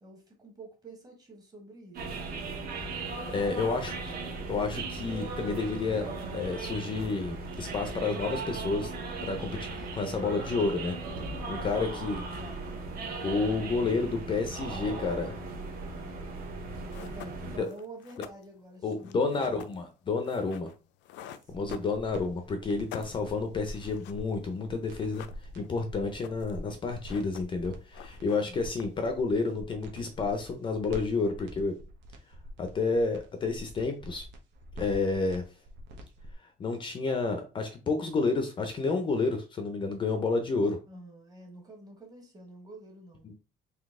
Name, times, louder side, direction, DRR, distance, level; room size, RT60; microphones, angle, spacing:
voice 1, 0.0-2.2 11.7-12.8 16.0-16.4 17.0-19.6 21.4-22.0 22.9-23.1 28.3-28.9 40.9-43.3, right 2 dB, 20° right, 1.1 m, -49 dB
sound 1, 1.9-17.6, right 3 dB, 55° right, 1.1 m, -37 dB
voice 2, 3.3-3.9 4.5-8.9 9.2-9.5 9.9-11.0 11.3-12.2 13.2-15.4 17.6-17.7 18.8-20.7 21.5-25.2 25.6-31.7 32.6-34.3 34.8-35.4 36.6-40.8 43.2-43.4, left 4 dB, 30° left, 0.5 m, -30 dB
sound 2, 16.5-16.6 16.9-22.4 22.7-24.3 24.5-24.6 24.8-25.8 26.0-26.6 26.9-27.7 27.9-29.1, left 10 dB, 80° left, 0.5 m, -47 dB
sound 3, 21.5-36.3, equal, 80° right, 1.0 m, -46 dB
3.9 x 2.8 x 3.6 m
cardioid pair, 170°, 18 cm